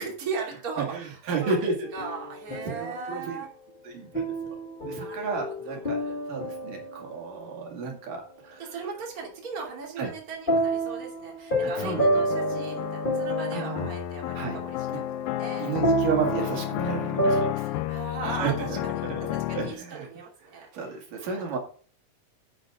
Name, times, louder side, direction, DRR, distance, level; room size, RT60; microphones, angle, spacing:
voice 1, 0.0-3.5 4.9-6.2 8.6-15.0 15.4-15.7 17.6-20.7 21.3-21.4, right 5 dB, 25° right, -1 dB, 3.0 m, -38 dB
voice 2, 0.8-1.9 2.5-3.4 3.8-4.6 4.9-6.0 6.3-8.8 10.0-10.1 11.6-12.3 13.5-13.9 14.3-14.6 14.9-15.0 15.6-17.7 18.2-20.1 20.5-21.6, right 5 dB, 70° right, 1 dB, 3.7 m, -32 dB
sound 1, 1.8-3.1 4.1-7.4 10.5-17.5, right 1 dB, 55° left, 0.5 m, -29 dB
sound 2, 11.8-19.7, left 15 dB, 85° left, 2.4 m, -32 dB
11.5 x 8.7 x 3.7 m, 0.43 s
omnidirectional pair, 4.0 m